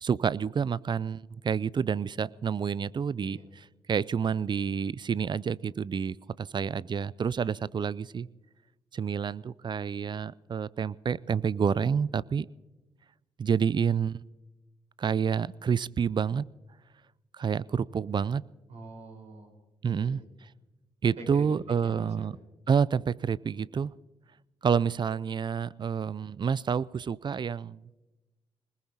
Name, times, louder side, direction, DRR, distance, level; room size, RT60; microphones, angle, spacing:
voice 1, 0.0-8.3 8.9-12.5 13.4-14.2 15.0-16.5 17.3-18.4 19.8-20.2 21.0-22.3 22.7-23.9 24.6-27.8, right 6 dB, 40° right, 21 dB, 0.4 m, -28 dB
voice 2, 18.7-19.5 19.8-20.2 21.0-21.6 21.8-22.3, right 2 dB, 60° right, 2 dB, 4.6 m, -45 dB
22.5 x 20.5 x 2.9 m, 1.1 s
hypercardioid pair, 40°, 12 cm